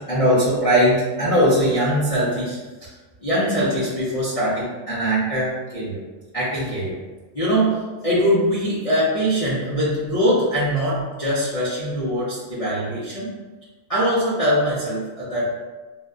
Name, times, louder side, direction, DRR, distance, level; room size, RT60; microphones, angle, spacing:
voice 1, 0.0-2.6 3.2-6.0 6.3-7.0 7.3-13.3 13.9-15.6, equal, 65° left, -11 dB, 0.3 m, -21 dB
2.7 x 2.3 x 2.3 m, 1.2 s
omnidirectional pair, 1.5 m